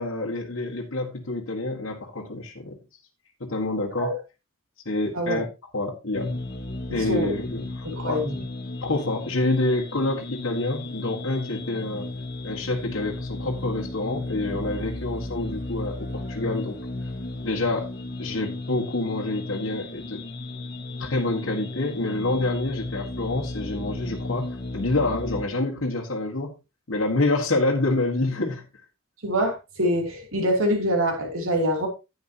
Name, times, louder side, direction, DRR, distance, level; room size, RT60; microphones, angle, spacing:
voice 1, 0.0-2.8 3.4-4.1 4.9-5.5 5.7-6.3 6.9-8.3 8.8-12.1 12.4-16.8 17.4-17.9 18.2-20.2 21.0-26.5 26.9-28.7, left 2 dB, 65° left, 1.7 m, -27 dB
sound 1, 6.1-25.4, left 2 dB, 50° left, 1.8 m, -34 dB
voice 2, 6.9-7.3 7.8-8.3 29.2-31.9, equal, 75° right, 3.0 m, -25 dB
10.5 x 9.7 x 2.9 m
head